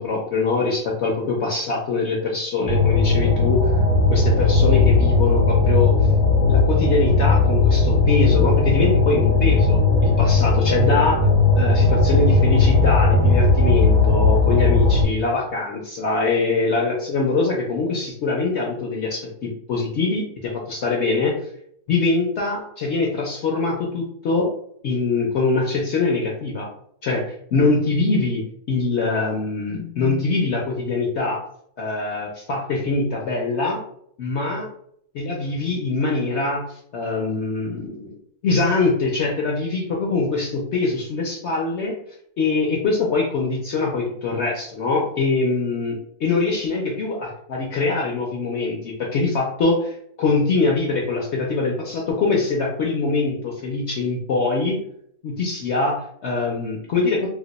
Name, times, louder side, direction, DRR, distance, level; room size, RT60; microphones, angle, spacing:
voice 1, 0.0-3.6 4.1-5.9 6.5-11.3 11.6-21.3 21.9-24.5 24.8-26.7 27.0-27.2 27.5-28.4 28.7-31.4 31.8-33.8 34.2-34.7 35.1-38.2 38.4-42.0 42.4-54.8 55.2-57.3, left 3 dB, 60° left, -2 dB, 0.8 m, -23 dB
sound 1, 2.7-15.0, left 3 dB, 25° left, 0.5 m, -17 dB
2.7 x 2.2 x 3.9 m, 0.68 s
omnidirectional pair, 1.5 m